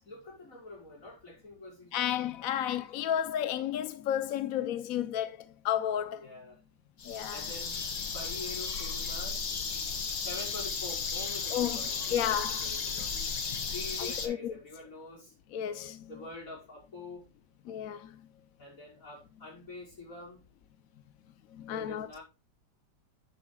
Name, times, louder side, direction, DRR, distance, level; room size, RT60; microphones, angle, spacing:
voice 1, 0.0-2.1 6.2-6.6 7.3-7.8 8.1-9.4 10.2-13.1 13.7-15.3 16.1-17.3 18.6-20.4 21.7-22.2, left 2 dB, 45° left, 6.0 m, -45 dB
voice 2, 1.9-5.4 5.6-6.2 7.1-7.4 11.5-11.8 12.1-12.7 14.0-14.5 15.5-16.0 17.7-18.1 21.6-22.1, left 10 dB, 65° left, 0.9 m, -32 dB
sound 1, 7.0-14.3, left 5 dB, 85° left, 2.3 m, -34 dB
10.0 x 10.0 x 2.3 m
omnidirectional pair, 2.0 m